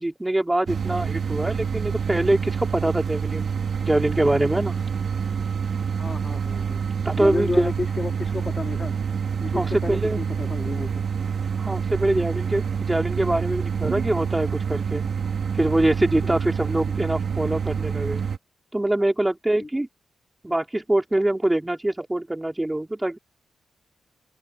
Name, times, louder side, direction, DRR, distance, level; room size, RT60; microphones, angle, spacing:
voice 1, 0.0-3.5 3.8-4.7 7.0-7.7 9.5-10.2 11.6-15.0 15.5-18.2 18.7-19.9 20.4-23.2, right 1 dB, 10° right, 4.5 m, -24 dB
sound 1, 0.6-18.4, right 6 dB, 55° right, 3.1 m, -27 dB
voice 2, 6.0-6.8 7.2-8.9 9.4-11.0 16.2-16.3 19.6-19.7, left 3 dB, 25° left, 3.5 m, -31 dB
open air
cardioid pair, 95°, 0 cm